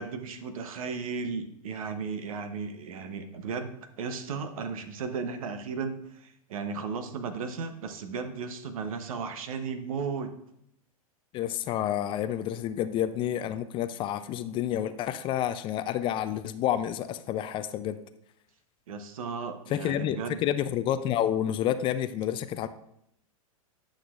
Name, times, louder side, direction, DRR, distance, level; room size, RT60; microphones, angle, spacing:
voice 1, 0.0-10.3 18.9-20.4, right 5 dB, 70° right, 8 dB, 0.9 m, -35 dB
voice 2, 11.3-18.0 19.7-22.7, left 11 dB, 30° left, 12 dB, 0.3 m, -29 dB
9.9 x 6.3 x 2.4 m, 0.76 s
hypercardioid pair, 110°, 19 cm